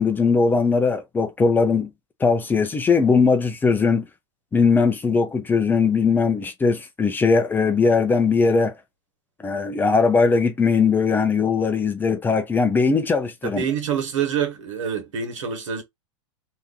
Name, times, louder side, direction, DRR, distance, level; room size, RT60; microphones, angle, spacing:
voice 1, 0.0-1.9 2.2-4.0 4.5-8.7 9.4-13.6, left 4 dB, 10° left, 0.6 m, -20 dB
voice 2, 13.4-15.8, right 8 dB, 85° right, 1.4 m, -26 dB
2.9 x 2.5 x 3.6 m
hypercardioid pair, 130°, 16 cm